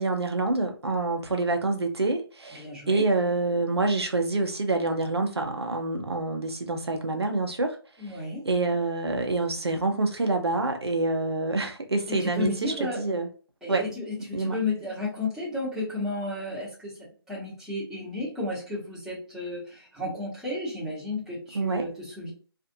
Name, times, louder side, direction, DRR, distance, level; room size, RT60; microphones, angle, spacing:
voice 1, 0.0-7.8 8.5-13.3 13.7-13.8 14.3-14.6 21.5-21.8, right 2 dB, 90° right, 0.6 m, -27 dB
voice 2, 2.5-3.0 8.0-8.5 12.2-13.0 13.6-16.9 17.3-22.3, left 2 dB, 5° right, 1.1 m, -33 dB
2.5 x 2.4 x 2.7 m
figure-of-eight pair, 150°, 13 cm